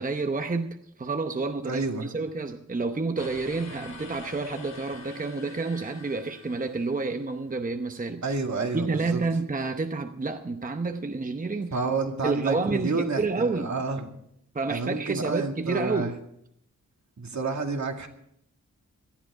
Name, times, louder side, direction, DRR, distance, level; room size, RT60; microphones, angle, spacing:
voice 1, 0.0-11.8 12.2-13.7 14.5-16.1, right 3 dB, 25° right, 7 dB, 0.8 m, -29 dB
voice 2, 1.7-2.1 8.2-9.2 11.7-14.1 14.7-16.1 17.2-18.1, right 4 dB, 65° right, 4 dB, 2.1 m, -29 dB
sound 1, 3.2-7.4, left 4 dB, 60° left, 2.2 m, -46 dB
18.5 x 13.0 x 4.8 m, 0.73 s
wide cardioid pair, 135°, 31 cm